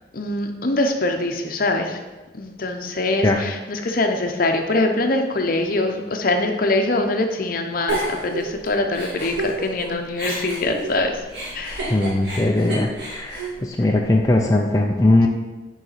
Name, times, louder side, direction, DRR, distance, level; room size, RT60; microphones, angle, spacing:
voice 1, 0.1-2.0 2.3-11.2 11.5-11.9 13.8-14.0, left 2 dB, 50° left, 5 dB, 0.8 m, -23 dB
Giggle, 7.9-9.8 10.2-14.4, right 1 dB, 65° right, 2.5 m, -30 dB
voice 2, 11.9-13.4 13.8-15.3, left 2 dB, 20° left, 1 dB, 0.4 m, -19 dB
5.5 x 4.8 x 5.7 m, 1.2 s
head